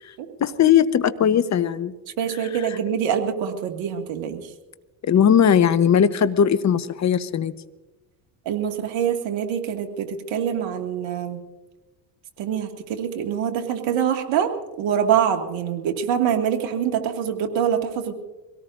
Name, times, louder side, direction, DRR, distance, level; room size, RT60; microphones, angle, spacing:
voice 1, 0.4-2.0 5.0-7.5, left 8 dB, 35° left, 13 dB, 1.0 m, -18 dB
voice 2, 2.2-4.4 8.5-11.4 12.4-14.5 14.8-18.1, right 8 dB, 65° right, 5 dB, 2.2 m, -24 dB
24.5 x 18.0 x 2.6 m, 1.1 s
hypercardioid pair, 70°, 49 cm